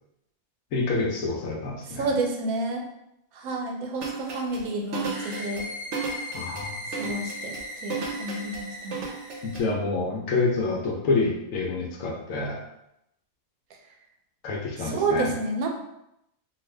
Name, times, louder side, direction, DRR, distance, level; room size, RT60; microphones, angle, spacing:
voice 1, 0.7-2.1 6.3-6.7 9.4-12.6 14.4-15.3, left 3 dB, 70° left, 0 dB, 1.0 m, -27 dB
voice 2, 1.9-2.8 3.3-5.7 7.0-9.1 14.8-15.7, right 3 dB, 80° right, 2 dB, 1.0 m, -30 dB
sound 1, 4.0-9.6, right 4 dB, 60° right, 0.9 m, -34 dB
sound 2, 4.9-9.7, left 1 dB, 15° left, 0.8 m, -38 dB
2.9 x 2.4 x 3.1 m, 0.80 s
omnidirectional pair, 1.5 m